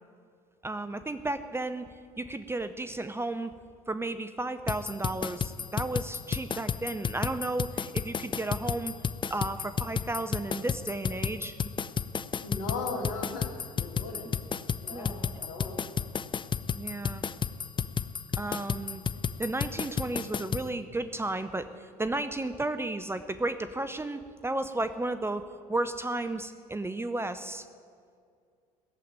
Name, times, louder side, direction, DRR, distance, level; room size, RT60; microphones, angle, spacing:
voice 1, 0.6-3.6 3.9-8.9 9.3-11.6 14.9-15.4 16.7-17.2 18.4-19.0 19.4-27.7, right 2 dB, 15° right, 10 dB, 0.7 m, -33 dB
sound 1, 4.7-20.7, left 7 dB, 25° left, 0.5 m, -32 dB
voice 2, 12.4-14.4 14.8-15.8, left 3 dB, 65° left, 1 dB, 2.8 m, -37 dB
17.5 x 7.7 x 8.9 m, 2.2 s
hypercardioid pair, 65°, 19 cm